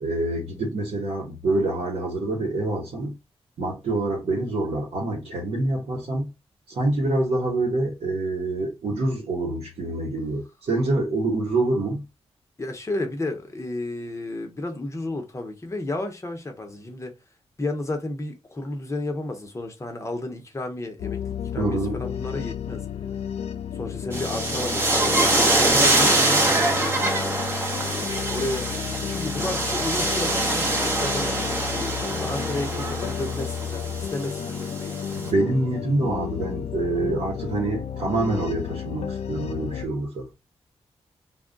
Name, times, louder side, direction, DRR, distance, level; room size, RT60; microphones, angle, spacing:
voice 1, 0.0-3.2 3.6-6.3 6.7-12.0 21.6-22.0 35.1-40.3, right 2 dB, 75° right, 1.0 m, -26 dB
voice 2, 12.6-17.1 17.6-22.8 23.7-26.8 27.8-28.7 29.1-31.3 31.7-35.0 36.9-37.2, left 2 dB, 25° left, 0.8 m, -32 dB
sound 1, 21.0-39.9, left 8 dB, 70° left, 0.4 m, -32 dB
sound 2, 24.1-35.3, right 2 dB, 20° right, 0.9 m, -24 dB
2.3 x 2.1 x 3.8 m
cardioid pair, 85°, 11 cm